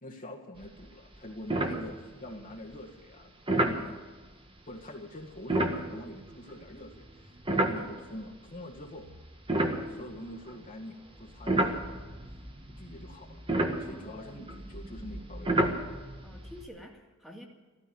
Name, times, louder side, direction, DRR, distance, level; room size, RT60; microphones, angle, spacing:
voice 1, 0.0-4.0 4.7-9.1 9.5-12.1 12.7-13.4 13.8-15.7, left 1 dB, 40° left, 0 dB, 1.8 m, -45 dB
sound 1, 0.6-0.9 1.1-1.2 1.5-2.3 3.5-3.8 5.4-8.3 8.9-10.7 11.2-16.6, right 1 dB, 25° right, 1.7 m, -31 dB
voice 2, 13.9-14.7 16.2-17.5, equal, ahead, 0 dB, 2.3 m, -49 dB
14.5 x 14.0 x 7.0 m, 1.3 s
head